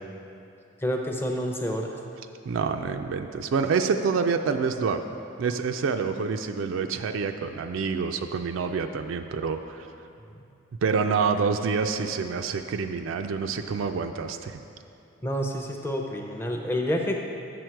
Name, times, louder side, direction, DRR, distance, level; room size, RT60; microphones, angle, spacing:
voice 1, 0.8-1.9 15.2-17.2, equal, 10° left, 2 dB, 0.5 m, -28 dB
voice 2, 2.5-5.0 5.4-9.9 10.8-14.6, right 5 dB, 75° right, 7 dB, 0.3 m, -27 dB
7.7 x 6.5 x 4.6 m, 2.7 s
head